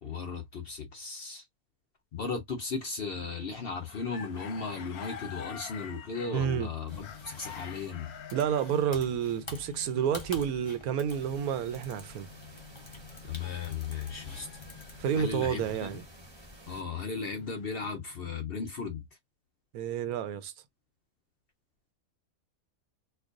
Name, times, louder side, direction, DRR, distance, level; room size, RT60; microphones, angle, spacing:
voice 1, 0.0-1.5 2.1-8.1 13.2-14.5 15.1-15.9 16.7-19.0, left 5 dB, 55° left, 0.7 m, -36 dB
sound 1, 3.2-8.8 13.1-15.1 15.8-18.0, left 8 dB, 85° left, 1.2 m, -48 dB
voice 2, 6.3-6.7 8.3-12.3 15.0-16.0 19.7-20.5, right 8 dB, 80° right, 1.1 m, -30 dB
sound 2, 6.9-16.0, left 3 dB, 25° left, 0.8 m, -47 dB
sound 3, 11.1-16.8, right 1 dB, 20° right, 0.8 m, -52 dB
4.4 x 2.3 x 2.5 m
omnidirectional pair, 1.5 m